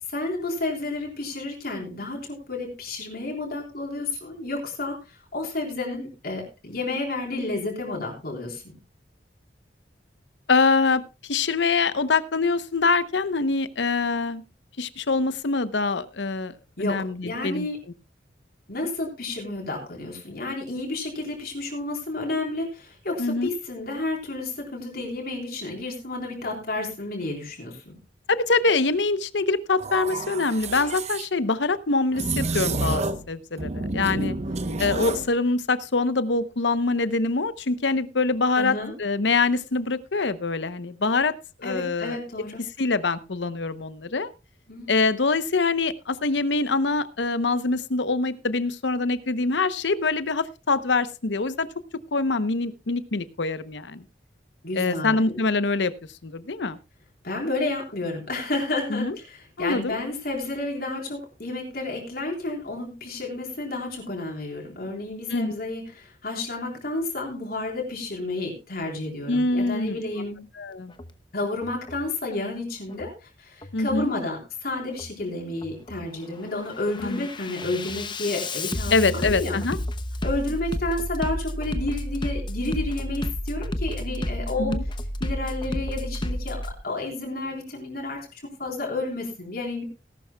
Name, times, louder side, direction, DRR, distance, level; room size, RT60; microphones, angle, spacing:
voice 1, 0.1-5.0 5.3-8.6 16.8-17.8 18.7-28.0 38.5-38.9 41.6-42.6 44.7-44.9 54.6-55.3 57.2-70.4 71.3-79.6 80.2-84.8 85.2-88.3 88.6-89.8, left 2 dB, 60° left, 0 dB, 3.8 m, -31 dB
voice 2, 10.5-14.4 14.8-16.5 16.8-17.7 23.2-23.5 28.3-34.3 34.8-42.2 42.8-44.3 44.9-51.7 52.1-54.0 54.7-55.9 56.2-56.8 58.9-59.2 59.6-60.0 65.3-65.5 69.3-70.0 70.6-70.9 73.7-74.1 77.0-77.3 78.9-79.8 84.6-84.8, left 3 dB, 85° left, 14 dB, 0.8 m, -24 dB
sound 1, 29.8-31.3 32.1-33.3 33.6-35.3, right 3 dB, 40° right, 0.9 m, -29 dB
Bass drum, 70.9-71.1 71.6-72.1 72.9-73.1 73.6-74.1 74.9-75.1 75.6-76.1 76.5-86.7, left 1 dB, 25° left, 0.9 m, -31 dB
18.0 x 11.5 x 2.3 m, 0.29 s
head